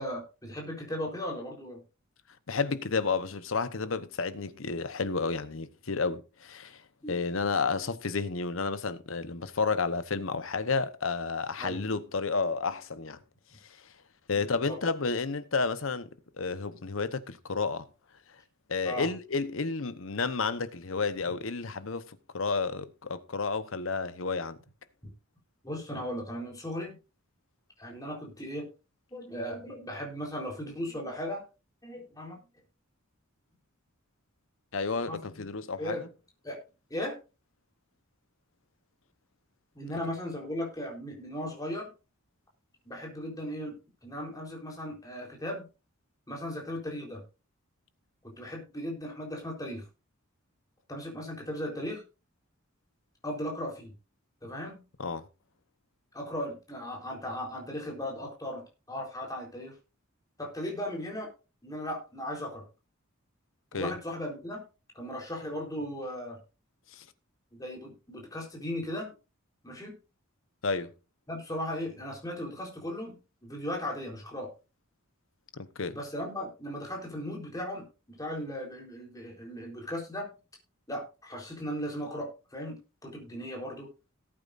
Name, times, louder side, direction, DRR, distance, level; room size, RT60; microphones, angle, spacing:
voice 1, 0.0-1.8 7.0-7.2 11.6-11.8 14.3-14.8 18.8-19.1 25.6-27.0 27.8-28.7 29.1-31.4 31.8-32.4 35.0-35.4 35.8-36.1 36.4-36.6 36.9-37.2 39.7-41.9 42.9-43.8 44.0-45.7 46.3-47.2 48.2-49.9 50.9-52.0 53.2-53.9 54.4-54.8 56.1-59.7 60.4-61.3 61.6-62.6 63.7-64.6 64.9-66.4 67.5-69.1 69.6-70.0 71.3-74.5 75.9-80.3 80.9-83.9, equal, 20° left, 3.9 m, -37 dB
voice 2, 2.5-6.8 7.1-13.2 14.3-16.1 16.4-17.9 18.7-24.6 34.7-36.1 55.0-55.3 63.7-63.9 66.9-67.0 70.6-70.9 75.5-76.0, left 4 dB, 70° left, 1.0 m, -31 dB
18.5 x 8.8 x 2.6 m
head